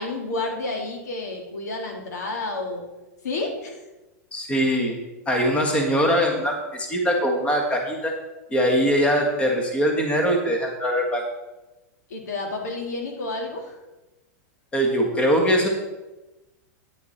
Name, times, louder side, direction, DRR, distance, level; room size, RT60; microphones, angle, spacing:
voice 1, 0.0-2.8 3.2-3.8 12.1-13.8, left 2 dB, 85° left, 2 dB, 2.3 m, -30 dB
voice 2, 4.3-5.0 5.3-8.1 8.5-11.2 14.7-15.7, equal, 15° left, 2 dB, 1.5 m, -22 dB
9.7 x 8.3 x 4.3 m, 1.1 s
supercardioid pair, 140°, 9 cm